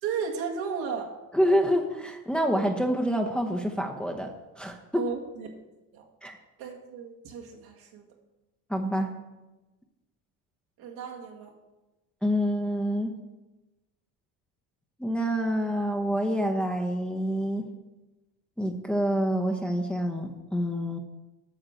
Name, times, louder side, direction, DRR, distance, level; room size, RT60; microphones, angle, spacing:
voice 1, 0.0-1.1 4.9-5.5 5.9-6.1 6.6-8.1 10.8-11.5, right 6 dB, 75° right, 0 dB, 2.1 m, -34 dB
voice 2, 1.3-4.3 4.6-5.0 6.2-6.4 8.7-9.1 12.2-13.1 15.0-17.7 18.6-21.0, equal, 5° left, 2 dB, 0.9 m, -27 dB
9.2 x 5.8 x 6.5 m, 1.1 s
cardioid pair, 115°, 38 cm